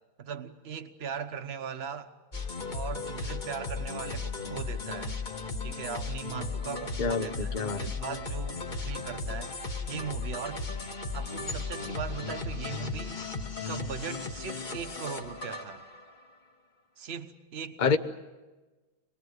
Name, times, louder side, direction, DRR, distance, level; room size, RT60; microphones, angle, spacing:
voice 1, 0.2-2.1 2.7-5.2 5.6-9.6 9.9-10.6 11.1-13.2 13.7-15.9 17.0-18.0, right 7 dB, 40° right, 9 dB, 1.0 m, -39 dB
sound 1, 2.3-16.2, left 4 dB, 30° left, 1.1 m, -36 dB
voice 2, 7.0-7.8 17.8-18.0, left 5 dB, 50° left, 7 dB, 0.5 m, -27 dB
25.5 x 20.5 x 8.0 m, 1.2 s
omnidirectional pair, 2.3 m